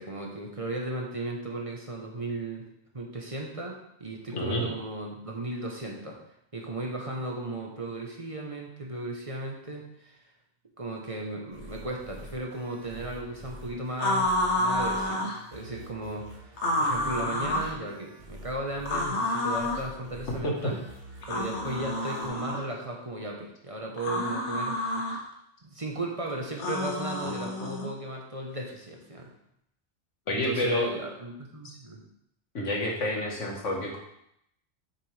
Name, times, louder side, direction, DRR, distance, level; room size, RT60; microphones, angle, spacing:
voice 1, 0.0-2.7 2.9-6.2 6.5-10.2 10.8-15.3 15.5-16.5 16.8-20.8 21.3-24.8 25.6-29.3 30.3-32.0, right 2 dB, 30° right, 0 dB, 1.1 m, -36 dB
voice 2, 4.3-4.7 20.4-20.7 30.3-30.9 32.5-34.0, left 1 dB, 85° left, 0 dB, 1.8 m, -28 dB
sound 1, 11.5-22.3, equal, 80° right, 2.0 m, -47 dB
sound 2, 14.0-15.4 16.6-17.7 18.9-19.9 21.2-22.6 24.0-25.2 26.6-27.9, left 1 dB, 70° left, 1.4 m, -29 dB
7.7 x 6.7 x 3.3 m, 0.76 s
omnidirectional pair, 1.2 m